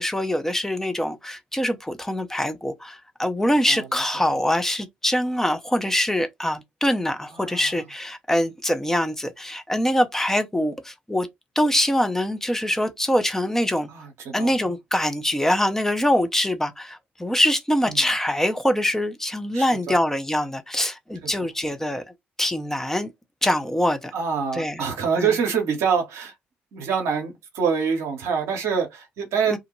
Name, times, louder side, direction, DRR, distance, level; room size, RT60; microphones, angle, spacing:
voice 1, 0.0-11.3 11.6-13.9 14.3-22.0 22.4-23.1 23.4-24.1 24.5-24.8 25.2-25.3 29.5-29.6, left 1 dB, 10° left, 0.6 m, -24 dB
voice 2, 7.4-7.7 13.9-14.7 17.9-18.0 19.5-19.9 21.2-21.3 24.1-26.3 26.7-29.6, right 6 dB, 65° right, 0.8 m, -26 dB
2.4 x 2.1 x 3.0 m
figure-of-eight pair, 45°, 5 cm